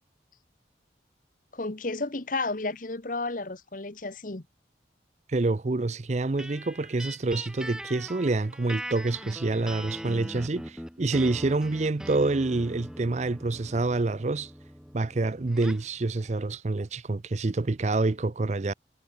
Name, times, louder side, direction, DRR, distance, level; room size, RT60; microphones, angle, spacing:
voice 1, 1.5-4.4, left 3 dB, 45° left, 1.2 m, -32 dB
voice 2, 5.3-14.5 14.9-18.7, right 2 dB, 40° right, 0.5 m, -27 dB
sound 1, 6.4-15.9, equal, 5° right, 2.8 m, -41 dB
head